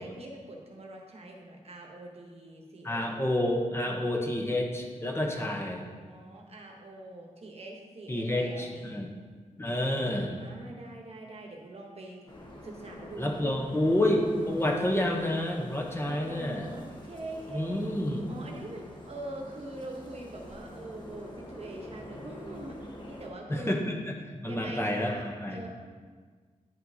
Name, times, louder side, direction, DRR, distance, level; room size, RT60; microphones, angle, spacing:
voice 1, 0.0-3.4 5.2-5.7 6.1-9.1 10.4-12.2 12.6-13.7 16.0-17.9 18.3-23.8 24.4-25.7, right 2 dB, 50° right, 1 dB, 1.0 m, -43 dB
voice 2, 2.8-5.9 8.1-9.1 9.6-10.4 13.2-16.7 17.5-18.4 23.5-24.1 24.4-25.6, left 1 dB, 20° left, 0 dB, 0.8 m, -29 dB
sound 1, 12.3-23.3, left 1 dB, 35° left, 1.1 m, -46 dB
8.9 x 5.2 x 2.7 m, 1.5 s
wide cardioid pair, 115°, 13 cm